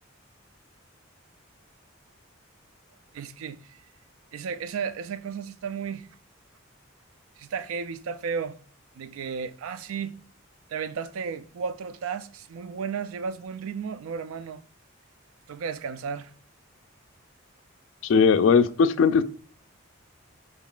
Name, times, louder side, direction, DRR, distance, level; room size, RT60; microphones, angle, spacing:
voice 1, 3.1-3.8 4.3-6.1 7.4-8.6 9.0-10.2 10.7-14.6 15.5-16.3, right 6 dB, 90° right, 0.4 m, -33 dB
voice 2, 18.0-19.2, left 5 dB, 65° left, 0.3 m, -19 dB
4.4 x 3.7 x 2.4 m
head